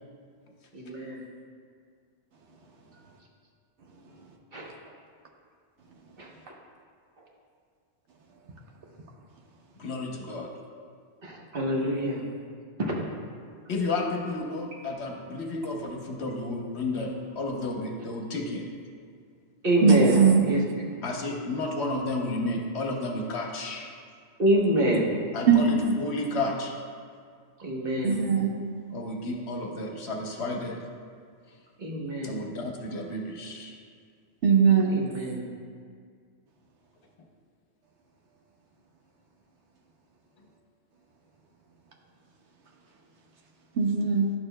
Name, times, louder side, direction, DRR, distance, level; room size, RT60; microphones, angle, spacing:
voice 1, 0.7-1.2 4.5-4.7 6.2-6.3 11.2-12.2 12.8-12.9 19.6-20.2 20.5-20.9 24.4-25.1 27.6-28.2 31.8-32.4 34.9-35.4, right 1 dB, 50° right, 1.2 m, -26 dB
voice 2, 9.8-10.5 13.7-18.6 21.0-23.9 25.3-26.7 28.9-30.8 32.2-33.8, left 2 dB, 65° left, 1.0 m, -32 dB
voice 3, 19.8-20.5 25.5-25.9 28.0-28.6 34.4-35.0 43.8-44.3, right 6 dB, 70° right, 1.0 m, -20 dB
10.5 x 6.6 x 2.2 m
omnidirectional pair, 1.3 m